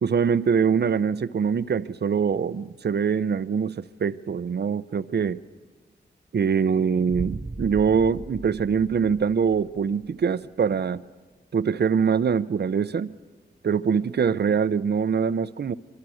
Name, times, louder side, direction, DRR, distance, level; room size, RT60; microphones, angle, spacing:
voice 1, 0.0-5.4 6.3-11.0 11.5-13.1 13.6-15.7, right 6 dB, 65° right, 0.6 m, -23 dB
Boom, 7.1-10.0, right 3 dB, 25° right, 0.7 m, -37 dB
24.5 x 23.5 x 6.3 m
wide cardioid pair, 120°, 18 cm